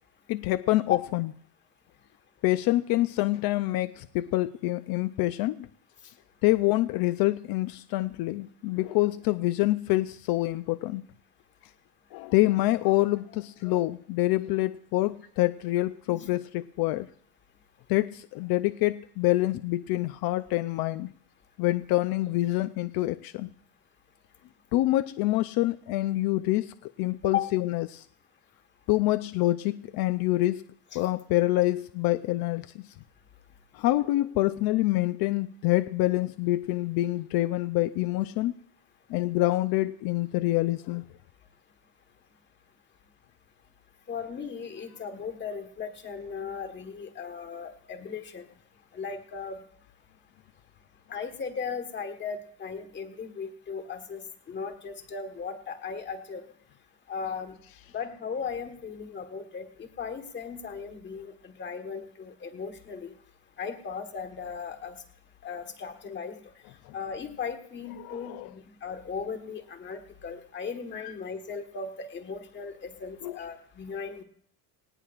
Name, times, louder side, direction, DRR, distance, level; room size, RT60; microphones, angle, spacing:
voice 1, 0.3-1.3 2.4-5.7 6.4-11.0 12.1-17.1 17.9-21.1 21.6-23.5 24.7-28.1 28.9-30.6 30.9-32.8 33.7-38.5 39.1-41.0 66.9-67.0 68.0-68.5 71.0-71.1 73.2-73.4, left 17 dB, 70° left, 12 dB, 0.6 m, -26 dB
voice 2, 44.1-48.4 48.9-49.6 51.1-56.4 57.1-57.5 57.9-63.1 63.6-65.0 65.4-66.3 66.9-74.2, left 6 dB, 30° left, 6 dB, 1.5 m, -36 dB
19.0 x 18.5 x 2.5 m, 0.65 s
cardioid pair, 155°, 38 cm